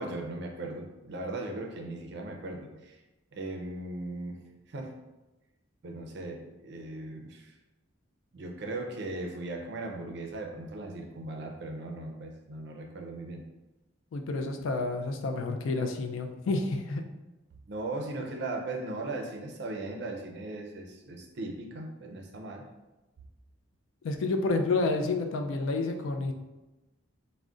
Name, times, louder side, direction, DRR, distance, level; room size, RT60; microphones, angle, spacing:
voice 1, 0.0-3.0 3.3-4.9 5.8-7.5 8.3-13.4 17.7-22.7, right 2 dB, 55° right, 1 dB, 0.4 m, -38 dB
voice 2, 14.1-17.0 24.0-26.3, left 3 dB, 75° left, 5 dB, 0.3 m, -29 dB
2.4 x 2.1 x 3.6 m, 1.1 s
head